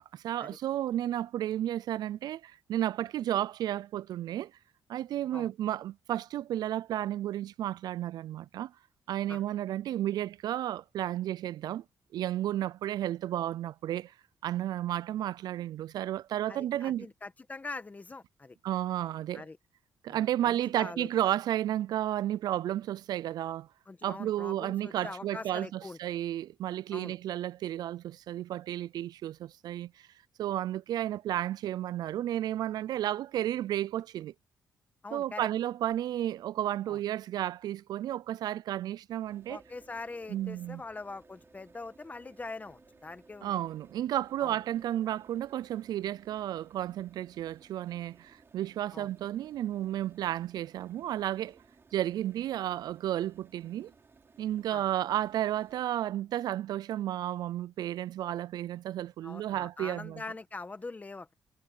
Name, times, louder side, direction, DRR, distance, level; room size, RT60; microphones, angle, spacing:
voice 1, 0.0-4.5 4.9-8.7 9.1-11.8 12.1-14.1 14.4-17.1 18.6-19.4 20.0-23.7 24.0-30.1 30.4-34.3 35.1-39.6 40.3-40.8 43.4-51.6 51.9-53.9 54.4-60.2, right 12 dB, 70° right, 0.3 m, -32 dB
voice 2, 16.5-18.6 19.3-19.6 20.1-21.1 23.9-26.0 26.9-27.2 35.0-35.5 36.9-37.0 39.5-43.6 44.4-44.6 48.9-49.1 54.7-54.8 59.2-61.3, left 3 dB, 20° left, 1.5 m, -43 dB
sound 1, 39.2-55.9, right 4 dB, 35° right, 4.2 m, -61 dB
sound 2, 39.5-45.5, right 1 dB, 10° right, 6.7 m, -63 dB
cardioid pair, 100°, 7 cm